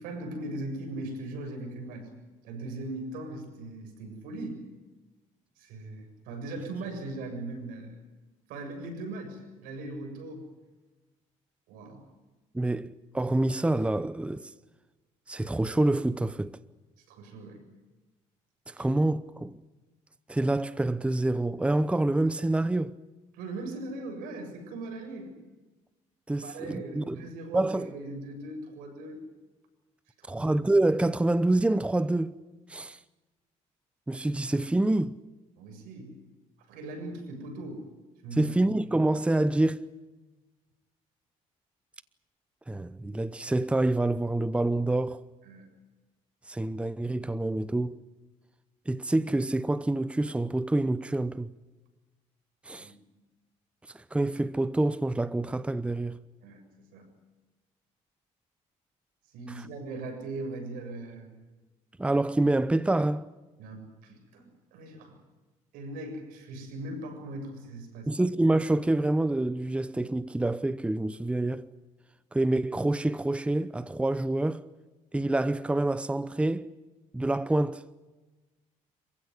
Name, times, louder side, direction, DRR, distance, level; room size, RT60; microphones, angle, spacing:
voice 1, 0.0-2.1 2.4-4.6 5.6-7.9 8.5-10.4 11.7-12.1 17.1-17.6 23.3-25.3 26.4-29.2 30.2-30.4 35.6-36.2 36.6-37.9 38.2-38.5 45.4-45.7 52.8-52.9 56.4-56.6 56.9-57.1 59.3-61.4 63.6-65.2 65.7-68.1, right 2 dB, 90° right, 7.3 m, -39 dB
voice 2, 12.5-14.5 15.3-16.5 18.7-19.6 20.3-23.0 26.3-27.2 27.5-27.9 30.3-32.3 32.7-33.0 34.1-35.2 38.4-39.9 42.7-45.2 46.5-48.0 48.9-51.5 52.7-52.9 53.9-56.2 62.0-63.3 68.1-71.7 72.3-74.7 75.1-76.7 77.1-77.8, right 2 dB, 10° right, 0.8 m, -27 dB
27.5 x 15.5 x 9.8 m
cardioid pair, 100°, 14 cm